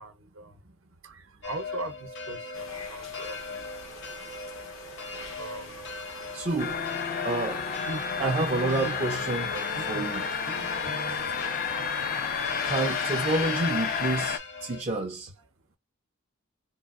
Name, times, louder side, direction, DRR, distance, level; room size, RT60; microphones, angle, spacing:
voice 1, 0.0-3.6 5.0-6.4 7.8-9.2 9.5-10.1 10.4-11.3, right 2 dB, 75° right, 0.7 m, -40 dB
sound 1, 1.4-14.8, left 4 dB, 60° left, 0.8 m, -40 dB
sound 2, 2.5-14.3, left 4 dB, 90° left, 0.9 m, -42 dB
voice 2, 6.3-6.8 7.2-7.7 8.2-9.5 9.9-10.3 12.6-15.3, right 2 dB, 30° right, 0.4 m, -29 dB
sound 3, 6.6-14.4, left 6 dB, 40° left, 0.3 m, -31 dB
3.4 x 2.3 x 2.4 m
head